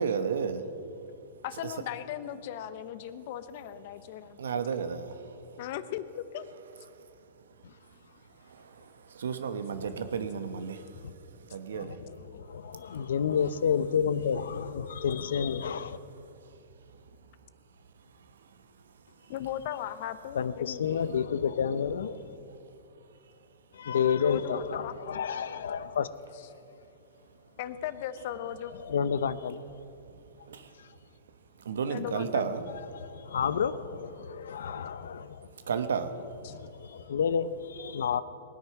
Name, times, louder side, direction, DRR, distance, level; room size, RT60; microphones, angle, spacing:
voice 1, 0.0-1.8 3.0-3.4 3.9-5.7 6.5-13.2 14.8-15.0 15.9-19.5 19.8-20.0 20.9-21.1 22.4-23.9 25.0-25.1 25.5-25.9 26.5-27.6 28.2-28.3 28.8-28.9 29.8-33.4 34.2-37.2 37.9-38.0, right 6 dB, 90° right, 1.1 m, -38 dB
voice 2, 1.4-4.4 5.6-6.5 19.3-21.0 24.2-24.9 27.6-28.7 31.9-32.3, left 11 dB, 55° left, 0.8 m, -37 dB
voice 3, 12.3-16.0 20.3-22.4 23.7-26.1 28.8-29.6 33.1-35.5 36.5-38.2, left 7 dB, 85° left, 0.6 m, -30 dB
20.0 x 9.6 x 5.9 m
hypercardioid pair, 135°, 0 cm